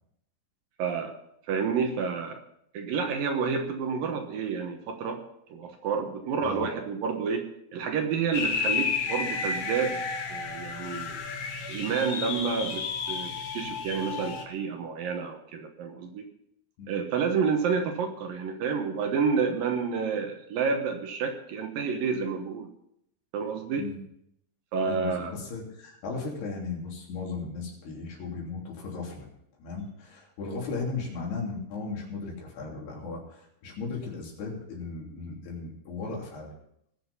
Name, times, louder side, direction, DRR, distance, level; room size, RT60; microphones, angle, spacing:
voice 1, 0.8-1.1 1.5-2.4 2.7-5.2 5.5-10.0 10.3-11.2 11.7-16.3 16.9-22.7 23.3-23.9 24.7-25.3, right 5 dB, 70° right, 4 dB, 2.7 m, -29 dB
Creepy and Dark, 8.3-14.4, left 5 dB, 55° left, 2.2 m, -32 dB
voice 2, 24.9-29.3 29.6-36.5, left 4 dB, 75° left, -2 dB, 5.2 m, -36 dB
20.0 x 7.0 x 5.4 m, 0.74 s
omnidirectional pair, 4.7 m